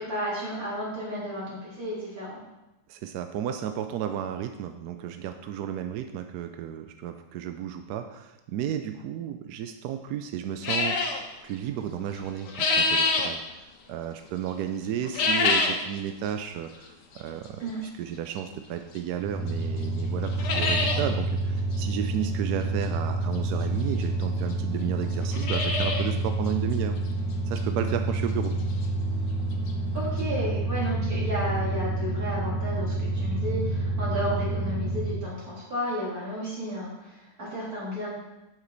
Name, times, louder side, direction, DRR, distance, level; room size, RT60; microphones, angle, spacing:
voice 1, 0.0-2.4 17.6-17.8 29.9-38.1, equal, 45° right, -7 dB, 3.4 m, -32 dB
voice 2, 2.9-11.0 11.4-13.6 13.9-17.7 18.0-27.0 27.5-28.6, right 9 dB, 75° right, 7 dB, 0.9 m, -33 dB
sound 1, 10.6-11.2 12.2-13.3 15.0-15.8 16.3-16.4 17.2-17.3 19.0-19.1 19.5-19.6 19.8-19.9 20.2-21.0 21.4-21.5 21.7-21.8 23.3-23.4 24.2-24.3 24.5-24.6 25.1-26.1 26.5-26.6 27.1-27.2 27.6-27.7 29.4-29.5 29.7-29.8 30.2-30.3, left 3 dB, 65° left, 1.5 m, -25 dB
sound 2, 19.2-35.3, right 2 dB, 15° right, 1.0 m, -28 dB
8.4 x 7.3 x 3.9 m, 0.98 s
omnidirectional pair, 2.1 m